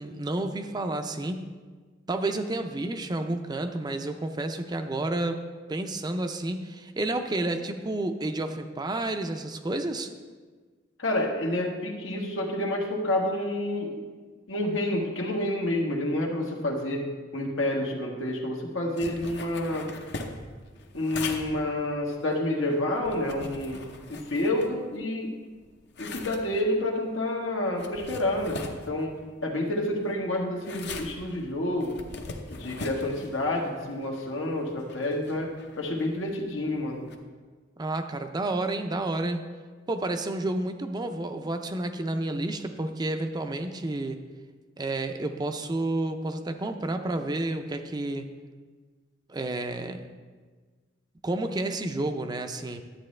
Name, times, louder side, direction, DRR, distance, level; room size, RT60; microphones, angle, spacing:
voice 1, 0.0-1.5 2.1-5.4 5.7-10.1 37.8-39.4 39.9-44.2 44.8-48.3 49.3-50.0 51.2-52.8, right 2 dB, 20° right, 7 dB, 0.5 m, -30 dB
voice 2, 11.0-14.0 14.5-19.9 20.9-23.8 24.1-25.3 26.0-29.1 29.4-32.0 32.5-35.5 35.8-37.0, left 1 dB, 85° left, 0 dB, 1.5 m, -29 dB
sound 1, 19.0-25.2 25.5-37.1, left 3 dB, 60° left, 0.8 m, -42 dB
11.5 x 8.2 x 3.3 m, 1.4 s
head